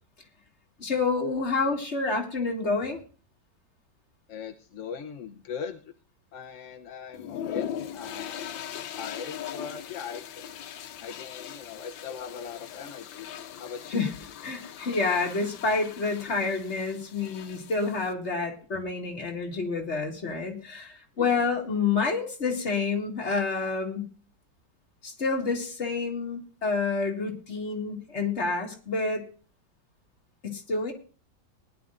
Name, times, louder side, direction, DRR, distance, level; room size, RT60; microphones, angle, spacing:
voice 1, 0.8-3.0 13.9-14.1 14.4-24.1 25.0-29.2 30.4-30.9, left 4 dB, 35° left, 2 dB, 2.2 m, -28 dB
voice 2, 4.3-5.8 6.3-8.5 8.9-10.4 11.0-13.3 13.6-14.0 21.2-21.4, left 7 dB, 55° left, 5 dB, 0.9 m, -39 dB
sound 1, 7.1-18.1, left 9 dB, 90° left, 1.5 m, -40 dB
19.5 x 11.0 x 2.6 m, 0.37 s
omnidirectional pair, 2.0 m